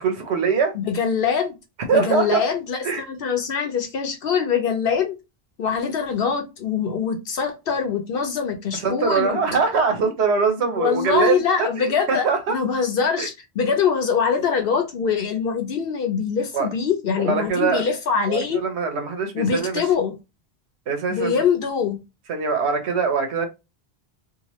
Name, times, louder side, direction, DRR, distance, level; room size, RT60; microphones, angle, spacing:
voice 1, 0.0-0.8 1.9-2.4 2.8-3.0 8.7-12.5 13.2-13.3 16.5-16.7 17.2-17.8 18.3-19.9 20.9-21.4 22.3-23.5, right 5 dB, 90° right, 1.0 m, -23 dB
voice 2, 0.7-1.6 1.9-5.2 5.6-9.4 10.7-18.6 19.3-20.1 21.1-22.0, left 6 dB, 65° left, 0.7 m, -23 dB
2.8 x 2.2 x 2.9 m
omnidirectional pair, 1.1 m